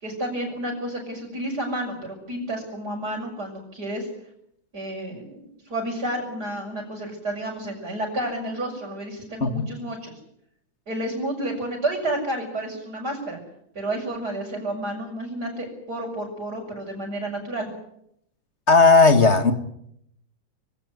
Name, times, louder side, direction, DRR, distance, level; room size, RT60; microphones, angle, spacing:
voice 1, 0.0-4.1 4.7-10.1 10.9-13.4 13.7-17.7, right 1 dB, 50° right, -6 dB, 6.5 m, -30 dB
voice 2, 18.7-19.5, left 3 dB, 35° left, 9 dB, 1.9 m, -15 dB
24.0 x 17.5 x 9.6 m, 0.76 s
omnidirectional pair, 2.1 m